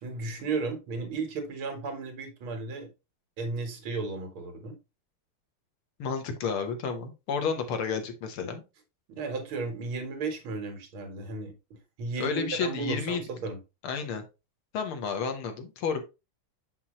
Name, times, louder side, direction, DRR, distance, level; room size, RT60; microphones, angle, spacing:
voice 1, 0.0-2.9 3.4-4.7 9.1-11.5 12.0-13.6, right 3 dB, 70° right, 2.2 m, -34 dB
voice 2, 6.0-8.6 12.2-13.2 13.8-14.2 14.7-16.0, left 6 dB, 75° left, 1.9 m, -31 dB
6.1 x 5.8 x 3.0 m
omnidirectional pair, 2.4 m